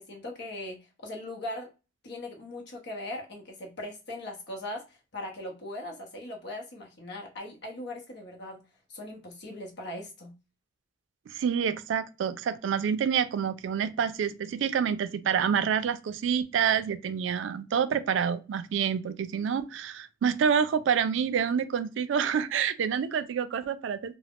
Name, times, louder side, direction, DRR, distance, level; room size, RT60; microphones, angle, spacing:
voice 1, 0.0-1.7 2.0-8.6 8.9-10.3, left 1 dB, 60° left, 0.6 m, -39 dB
voice 2, 11.3-24.2, right 7 dB, 75° right, 0.3 m, -27 dB
2.3 x 2.0 x 3.4 m
head